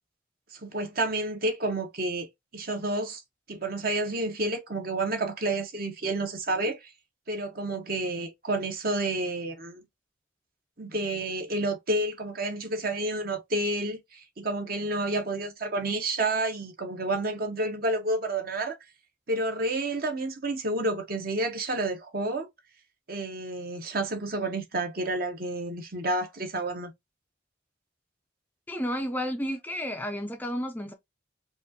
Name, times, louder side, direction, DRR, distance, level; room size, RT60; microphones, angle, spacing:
voice 1, 0.5-2.3 2.5-3.2 3.5-6.9 7.3-9.8 10.8-18.8 19.3-22.5 23.1-26.9, right 2 dB, 50° right, 1.1 m, -30 dB
voice 2, 28.7-30.9, equal, 10° left, 0.4 m, -31 dB
5.1 x 2.5 x 2.6 m
head